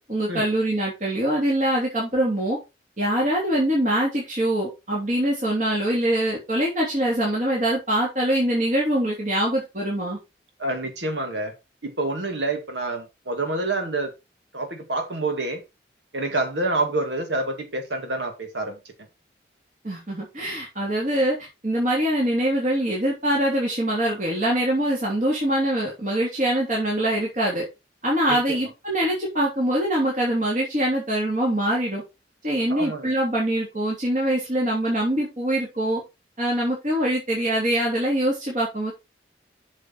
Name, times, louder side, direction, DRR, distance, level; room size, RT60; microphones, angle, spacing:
voice 1, 0.1-2.6 3.0-10.2 19.8-27.7 28.0-32.0 32.4-36.0 36.4-38.9, right 1 dB, 45° right, 3.3 m, -23 dB
voice 2, 10.6-11.5 11.8-14.1 14.5-15.6 16.1-18.8 28.3-28.6 32.7-33.1, right 2 dB, 80° right, 2.3 m, -27 dB
8.0 x 6.5 x 4.1 m
head